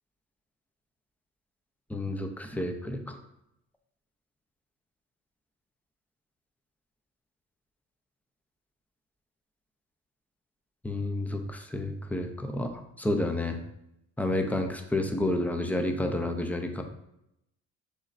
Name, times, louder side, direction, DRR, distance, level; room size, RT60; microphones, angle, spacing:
voice 1, 1.9-3.2 10.8-13.6 14.2-16.8, left 1 dB, 5° left, 5 dB, 0.6 m, -30 dB
6.4 x 3.1 x 2.6 m, 0.83 s
cardioid pair, 90°, 30 cm